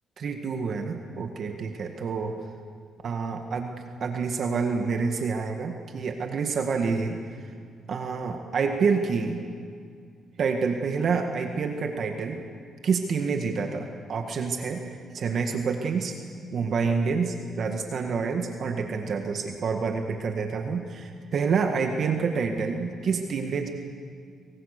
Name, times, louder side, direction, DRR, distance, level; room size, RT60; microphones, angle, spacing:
voice 1, 0.2-2.3 3.0-3.7 4.0-7.2 7.9-9.4 10.4-12.4 12.8-14.8 15.1-16.1 16.5-23.7, right 5 dB, 55° right, 4 dB, 1.8 m, -28 dB
24.5 x 22.5 x 6.8 m, 2.2 s
cardioid pair, 90°, 0 cm